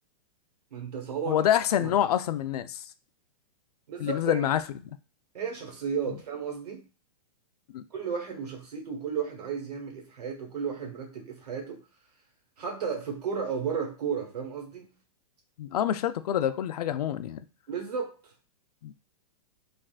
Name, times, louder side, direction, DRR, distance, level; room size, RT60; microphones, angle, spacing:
voice 1, 0.7-1.4 1.8-2.1 3.9-4.4 5.3-6.8 7.9-11.8 12.6-14.9 17.7-18.2, right 6 dB, 90° right, 1.2 m, -33 dB
voice 2, 1.3-2.8 4.0-4.6 7.7-7.8 15.6-17.4 18.8-18.9, left 10 dB, 80° left, 0.4 m, -26 dB
3.4 x 2.4 x 2.4 m
supercardioid pair, 170°, 20 cm